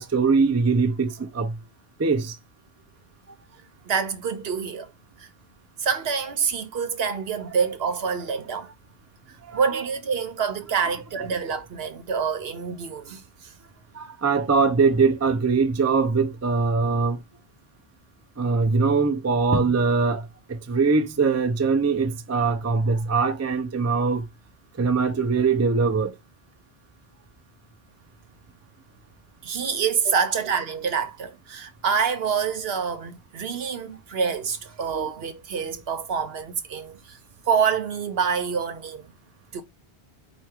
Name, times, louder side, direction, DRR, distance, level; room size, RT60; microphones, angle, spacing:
voice 1, 0.0-1.5 2.0-2.3 9.5-9.6 13.9-17.2 18.4-24.2 24.8-26.1 34.9-35.1, right 4 dB, 25° right, 0.3 m, -22 dB
voice 2, 3.9-4.9 5.2-5.3 5.8-8.7 9.5-13.5 29.4-37.2 37.5-39.1 39.5-39.6, right 6 dB, 65° right, 1.0 m, -26 dB
4.8 x 2.5 x 4.3 m
omnidirectional pair, 1.1 m